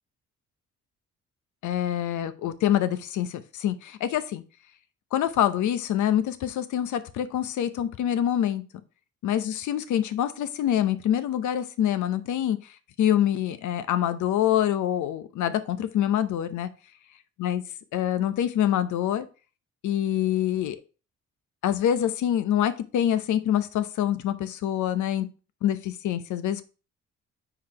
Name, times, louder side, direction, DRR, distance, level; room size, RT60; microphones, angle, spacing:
voice 1, 1.6-4.4 5.1-8.6 9.2-12.6 13.0-16.7 17.4-17.6 17.9-19.3 19.8-20.8 21.6-25.3 25.6-26.6, left 11 dB, 75° left, 13 dB, 0.8 m, -25 dB
4.7 x 3.9 x 5.6 m, 0.34 s
cardioid pair, 90°, 30 cm